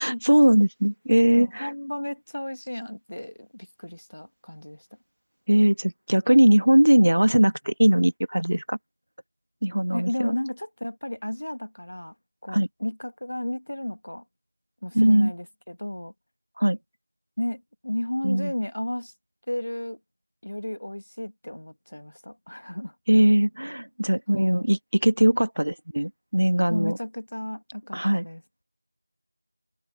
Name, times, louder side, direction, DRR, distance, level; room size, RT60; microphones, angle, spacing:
voice 1, 0.0-1.7 5.5-8.8 9.6-10.3 12.5-12.7 14.9-15.3 16.6-16.8 18.2-18.5 23.1-27.0 27.9-28.3, right 1 dB, 55° right, 1.4 m, -20 dB
voice 2, 1.4-4.9 9.9-12.1 12.4-14.2 14.8-16.1 17.4-19.1 19.5-20.0 20.4-22.9 24.3-24.7 26.7-28.4, left 1 dB, 45° left, 1.7 m, -33 dB
open air
figure-of-eight pair, 180°, 0 cm